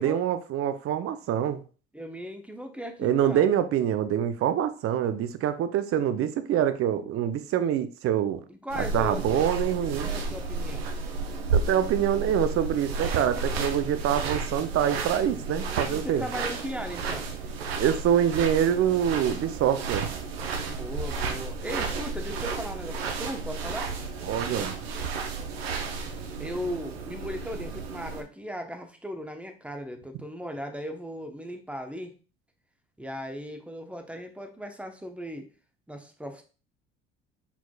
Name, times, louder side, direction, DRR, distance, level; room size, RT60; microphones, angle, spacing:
voice 1, 0.0-1.6 3.0-8.4 8.9-10.1 11.5-16.2 17.8-20.1 24.3-24.8, right 10 dB, 50° right, 11 dB, 0.6 m, -25 dB
voice 2, 1.9-3.5 8.5-9.5 9.8-10.9 15.9-17.3 20.7-23.9 26.4-32.1 33.0-35.5 35.9-36.4, equal, 5° right, 5 dB, 0.9 m, -37 dB
sound 1, 8.7-28.2, right 4 dB, 85° right, 0.7 m, -32 dB
4.4 x 4.2 x 2.3 m, 0.36 s
hypercardioid pair, 65°, 30 cm